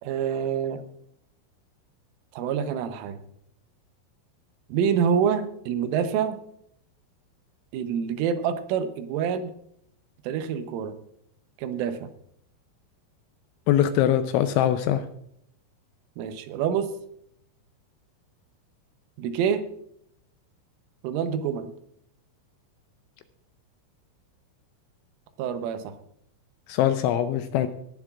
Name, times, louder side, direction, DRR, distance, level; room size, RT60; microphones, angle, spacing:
voice 1, 0.0-0.8 2.3-3.2 4.7-6.4 7.7-9.5 10.2-11.0 11.6-12.1 16.2-16.9 19.2-19.6 21.0-21.7 25.4-25.9, right 7 dB, 80° right, 9 dB, 3.4 m, -26 dB
voice 2, 13.7-15.0 26.7-27.7, left 11 dB, 85° left, 9 dB, 2.8 m, -22 dB
18.5 x 11.0 x 2.4 m, 0.71 s
omnidirectional pair, 5.8 m